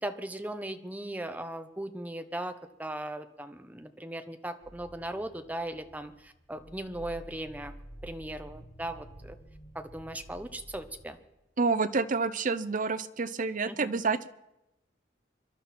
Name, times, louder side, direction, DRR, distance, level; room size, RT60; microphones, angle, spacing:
voice 1, 0.0-7.7 8.0-9.4 9.7-11.2 13.7-13.9, right 1 dB, 10° right, 8 dB, 0.9 m, -38 dB
sound 1, 4.6-11.0, right 1 dB, 35° left, 2.6 m, -50 dB
voice 2, 11.6-14.3, right 4 dB, 45° right, 13 dB, 0.7 m, -28 dB
25.5 x 12.0 x 4.3 m, 0.91 s
head